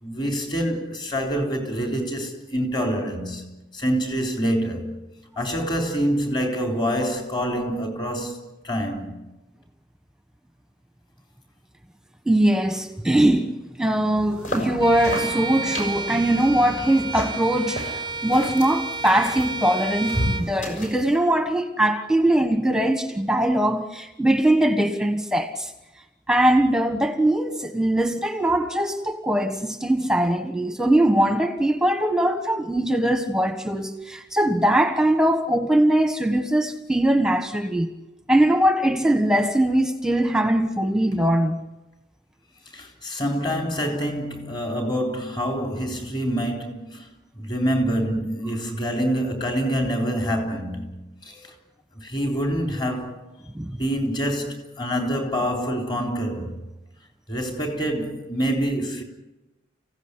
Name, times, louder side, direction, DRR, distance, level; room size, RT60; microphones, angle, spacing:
voice 1, 0.0-5.0 5.4-8.4 8.6-9.2 42.7-47.1 47.4-51.5 52.0-53.3 53.7-56.5 57.3-59.0, equal, 25° left, 3.9 m, -26 dB
voice 2, 12.3-25.7 26.3-37.9 38.3-41.6 53.5-53.7, right 1 dB, 5° right, 1.3 m, -21 dB
sound 1, 14.2-21.1, equal, 40° left, 6.4 m, -33 dB
Bowed string instrument, 14.8-20.5, right 3 dB, 25° right, 0.8 m, -31 dB
30.0 x 16.5 x 9.9 m
head